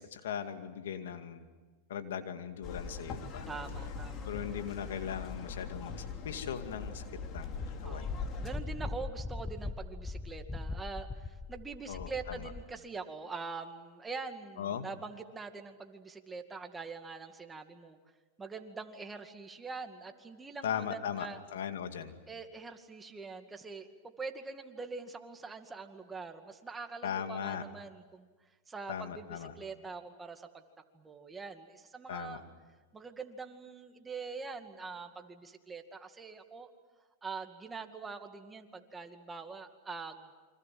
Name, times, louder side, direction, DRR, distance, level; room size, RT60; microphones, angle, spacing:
voice 1, 0.0-1.5 1.9-3.5 4.3-7.0 7.3-8.1 11.9-12.1 12.4-12.5 14.6-14.9 20.6-22.1 27.0-27.6 28.9-29.5 32.1-32.4, left 8 dB, 80° left, 7 dB, 2.4 m, -38 dB
sound 1, 2.6-8.6, left 5 dB, 40° left, 3.5 m, -41 dB
voice 2, 3.5-4.3 7.8-18.0 18.4-21.4 22.3-23.9 24.2-28.3 28.7-30.6 30.9-32.4 32.9-36.7 37.2-40.3, right 4 dB, 15° right, 6 dB, 2.2 m, -44 dB
Wind, 7.4-12.7, left 3 dB, 10° left, 0.9 m, -40 dB
29.0 x 25.5 x 7.8 m, 1.3 s
hypercardioid pair, 125°, 0 cm